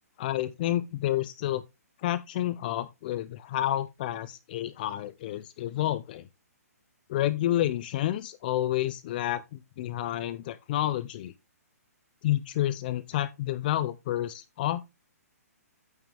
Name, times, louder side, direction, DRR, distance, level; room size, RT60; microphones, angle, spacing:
voice 1, 0.2-1.6 2.0-6.3 7.1-11.3 12.2-14.8, left 13 dB, 35° left, 0.4 m, -29 dB
8.9 x 6.0 x 3.4 m
hypercardioid pair, 155°, 9 cm